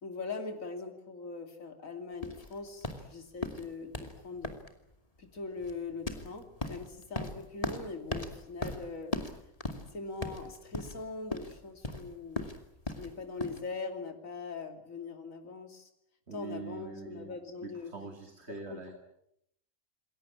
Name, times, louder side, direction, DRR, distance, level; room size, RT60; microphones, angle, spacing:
voice 1, 0.0-4.6 5.2-9.2 9.9-12.5 13.0-15.9 16.3-17.9 18.5-19.0, left 4 dB, 70° left, 5 dB, 3.1 m, -41 dB
sound 1, 2.2-13.6, left 2 dB, 25° left, 2.6 m, -39 dB
voice 2, 16.3-17.3 17.6-19.0, right 5 dB, 50° right, 5 dB, 2.6 m, -44 dB
28.0 x 21.0 x 8.6 m, 0.79 s
omnidirectional pair, 1.5 m